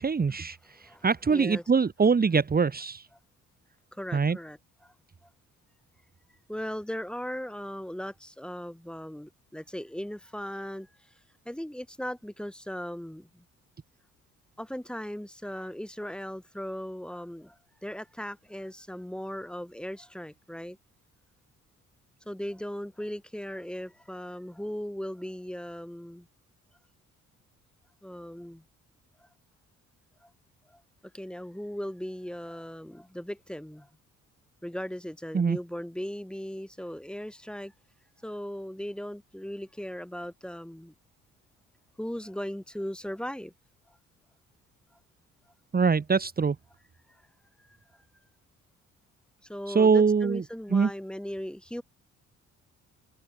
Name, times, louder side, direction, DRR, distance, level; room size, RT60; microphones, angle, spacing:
voice 1, 0.0-3.1 4.1-4.4 35.3-35.6 45.7-46.6 49.7-50.4 50.7-50.9, right 5 dB, 30° right, 1.9 m, -23 dB
voice 2, 0.7-1.6 3.9-4.9 5.2-5.3 6.5-11.1 11.5-13.5 14.6-20.8 22.3-26.3 28.0-28.6 29.2-29.3 30.2-30.3 30.7-30.8 31.1-33.9 34.6-37.7 38.2-40.9 42.0-43.5 43.9-44.0 47.1-47.2 47.6-47.8 49.4-51.8, equal, 5° left, 5.4 m, -38 dB
cardioid pair, 90°, 30 cm